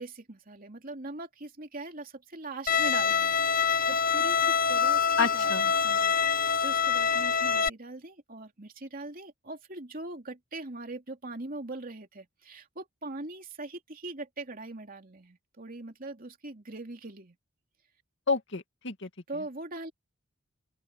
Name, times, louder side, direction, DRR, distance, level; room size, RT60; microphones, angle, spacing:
voice 1, 0.0-17.4 19.3-19.9, right 2 dB, 45° right, 2.9 m, -41 dB
Bowed string instrument, 2.7-7.7, left 6 dB, 45° left, 1.2 m, -25 dB
voice 2, 5.2-5.7 18.3-19.1, left 5 dB, 60° left, 2.2 m, -29 dB
open air
head